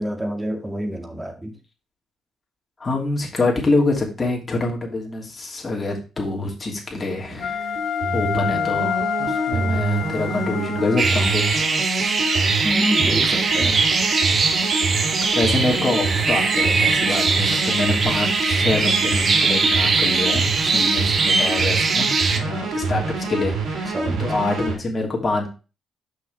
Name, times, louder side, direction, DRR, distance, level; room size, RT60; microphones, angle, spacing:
voice 1, 0.0-1.5 12.6-13.8 23.9-24.4, equal, 15° right, 4 dB, 2.1 m, -27 dB
voice 2, 2.8-7.7 8.1-11.7 15.3-25.5, left 2 dB, 30° left, -1 dB, 3.0 m, -25 dB
sound 1, 7.0-24.8, right 3 dB, 70° right, 3.0 m, -26 dB
Wind instrument woodwind instrument, 7.4-11.7, left 8 dB, 70° left, 2.8 m, -27 dB
sound 2, 11.0-22.4, right 4 dB, 45° right, 1.3 m, -21 dB
6.2 x 5.9 x 4.6 m, 0.32 s
cardioid pair, 90°, 0 cm